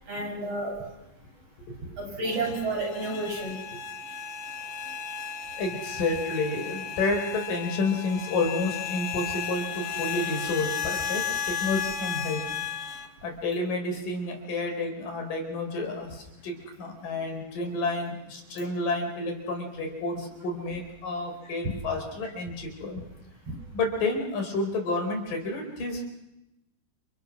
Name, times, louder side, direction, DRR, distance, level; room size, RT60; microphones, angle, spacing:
voice 1, 0.1-0.7 2.0-3.6, right 2 dB, 45° right, 0 dB, 8.9 m, -30 dB
sound 1, 2.2-13.1, left 7 dB, 65° left, 3.2 m, -34 dB
voice 2, 5.6-12.4 13.2-23.0 23.7-26.0, left 2 dB, 90° left, 3 dB, 6.2 m, -30 dB
29.5 x 29.0 x 6.3 m, 0.94 s
omnidirectional pair, 3.7 m